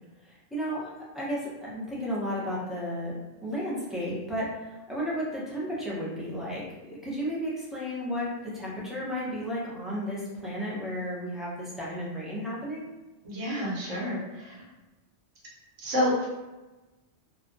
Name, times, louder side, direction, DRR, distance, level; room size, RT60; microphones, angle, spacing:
voice 1, 0.2-0.9 1.1-3.1 3.4-12.9, equal, ahead, -8 dB, 0.4 m, -33 dB
voice 2, 13.2-14.5 15.8-16.3, left 1 dB, 85° right, -4 dB, 1.2 m, -29 dB
2.7 x 2.2 x 2.5 m, 1.1 s
omnidirectional pair, 1.3 m